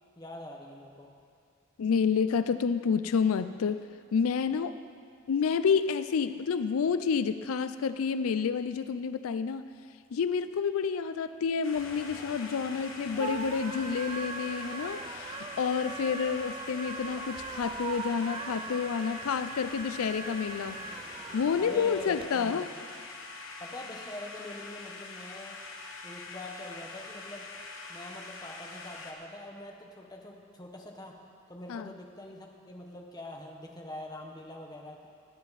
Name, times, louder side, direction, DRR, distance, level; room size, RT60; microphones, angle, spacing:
voice 1, 0.2-1.1 21.6-22.7 23.6-25.6 26.0-27.5 27.9-31.2 31.5-35.1, left 1 dB, 20° left, 1 dB, 1.1 m, -44 dB
voice 2, 1.8-3.8 4.1-4.7 5.3-9.7 10.1-20.8 21.3-22.7 31.7-31.9, left 6 dB, 90° left, 12 dB, 0.4 m, -29 dB
sound 1, 11.6-29.1, left 3 dB, 65° left, 1.3 m, -44 dB
sound 2, 11.7-22.3, right 4 dB, 25° right, 0.3 m, -41 dB
19.0 x 9.5 x 4.1 m, 2.3 s
head